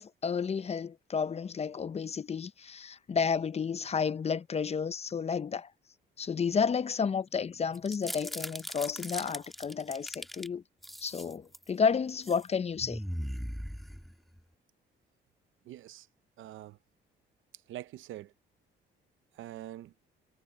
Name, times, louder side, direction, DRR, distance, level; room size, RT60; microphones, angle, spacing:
voice 1, 0.0-5.7 6.2-10.6 11.0-13.0, left 6 dB, 30° left, 0.6 m, -31 dB
sound 1, 7.7-10.5 10.8-11.7 12.1-12.4 12.8-14.4, equal, ahead, 1.6 m, -39 dB
voice 2, 15.6-16.1 16.4-16.8 17.7-18.3 19.3-19.9, right 13 dB, 80° right, 0.7 m, -44 dB
cardioid pair, 90°, 20 cm